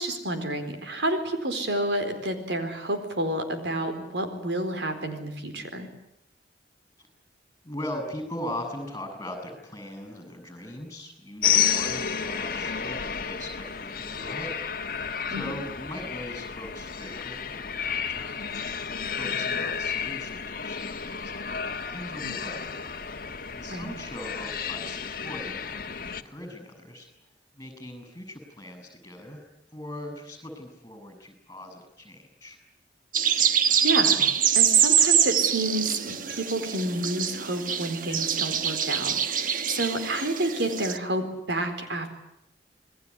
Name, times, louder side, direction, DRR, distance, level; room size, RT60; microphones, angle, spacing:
voice 1, 0.0-5.9 15.3-15.4 22.2-22.4 23.7-23.9 33.4-34.2 34.5-42.1, right 1 dB, 80° right, 7 dB, 4.3 m, -30 dB
voice 2, 7.6-14.5 14.8-18.9 19.1-21.5 21.9-22.7 23.5-27.1 27.6-29.4 29.7-32.6, left 1 dB, 20° left, 6 dB, 7.3 m, -40 dB
sound 1, 11.4-26.2, left 7 dB, 55° left, 1.4 m, -31 dB
sound 2, 33.1-41.0, right 8 dB, 50° right, 1.2 m, -24 dB
27.5 x 21.0 x 9.9 m, 0.79 s
head